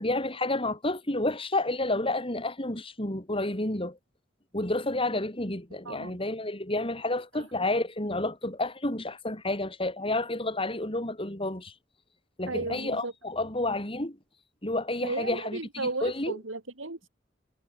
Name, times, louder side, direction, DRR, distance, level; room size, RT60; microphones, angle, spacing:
voice 1, 0.0-4.0 4.5-11.7 12.4-14.2 14.6-16.3, left 2 dB, 30° left, 4.5 m, -30 dB
voice 2, 5.8-6.2 7.3-7.5 12.5-13.1 15.0-17.1, right 2 dB, 80° right, 2.9 m, -34 dB
head